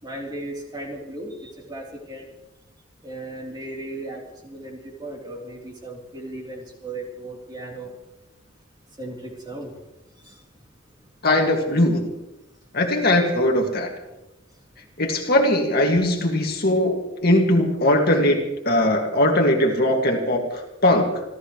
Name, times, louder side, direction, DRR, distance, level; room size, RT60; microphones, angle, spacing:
voice 1, 0.0-2.3 3.0-7.9 9.0-9.7 10.2-10.3, right 1 dB, 20° right, -2 dB, 3.6 m, -36 dB
voice 2, 11.2-12.1 12.7-13.9 15.0-18.4 18.6-21.2, left 1 dB, 50° left, 2 dB, 2.2 m, -20 dB
28.0 x 14.0 x 3.2 m, 0.96 s
head